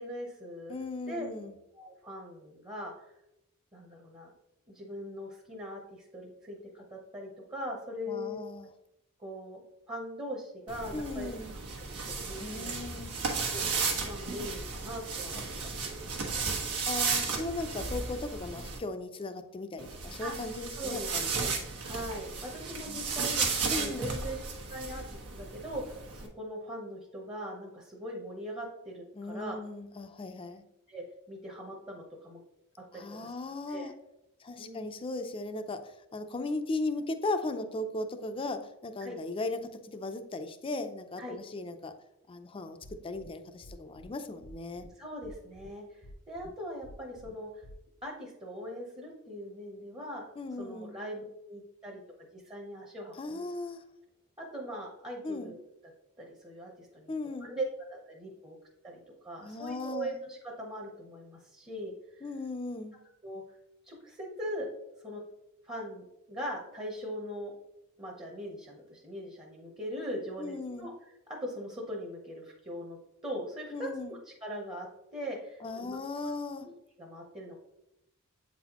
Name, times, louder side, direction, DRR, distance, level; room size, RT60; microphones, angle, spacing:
voice 1, 0.0-0.7 1.1-1.3 1.8-2.9 3.7-4.3 4.7-8.4 9.2-11.3 11.9-12.7 13.5-16.4 20.2-20.3 20.7-24.4 24.6-29.6 30.9-32.4 32.8-33.3 33.7-33.9 34.6-34.9 39.0-39.2 41.2-41.4 45.0-47.6 48.0-50.2 50.6-52.0 52.3-53.5 54.4-55.6 56.2-57.1 57.4-57.6 57.9-58.6 58.8-62.3 63.2-63.4 63.8-64.7 65.0-65.2 65.6-67.5 68.0-73.0 73.2-76.0 76.6-77.6, equal, 20° right, -1 dB, 0.8 m, -41 dB
voice 2, 0.7-1.6 8.1-8.7 10.9-11.5 12.4-13.1 15.3-15.4 16.9-21.3 22.8-23.0 23.7-24.2 29.1-30.6 32.9-33.9 34.4-41.9 42.3-42.8 43.0-44.9 50.4-51.0 53.2-53.8 55.2-55.5 57.1-57.5 59.4-60.2 62.2-63.0 70.4-70.9 73.7-74.2 75.6-76.7, left 2 dB, 25° left, 8 dB, 0.4 m, -37 dB
sound 1, 10.7-18.8 19.8-26.3, right 4 dB, 90° right, 1.2 m, -34 dB
sound 2, 42.8-43.3 43.6-44.1 44.4-44.9 45.2-45.7 46.0-46.5 46.8-47.3 47.6-47.7, left 1 dB, 90° left, 1.1 m, -50 dB
8.0 x 4.1 x 2.9 m, 0.88 s
head